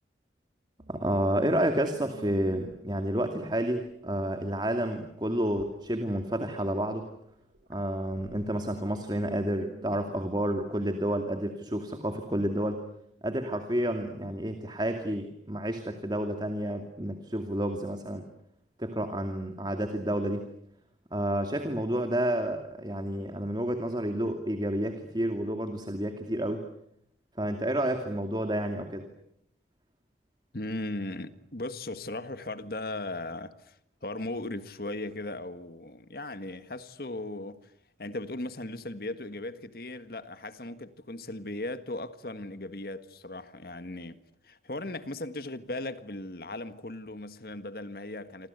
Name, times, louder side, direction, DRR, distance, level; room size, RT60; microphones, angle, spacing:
sound 1, 0.8-9.9, right 1 dB, 80° right, 3.5 m, -53 dB
voice 1, 0.9-7.1 7.7-12.8 13.2-18.3 18.8-20.5 21.1-26.7 27.4-29.1, right 1 dB, 25° right, 2.4 m, -30 dB
voice 2, 30.5-37.7 38.0-48.5, left 2 dB, 55° left, 1.7 m, -37 dB
28.0 x 26.0 x 8.2 m
head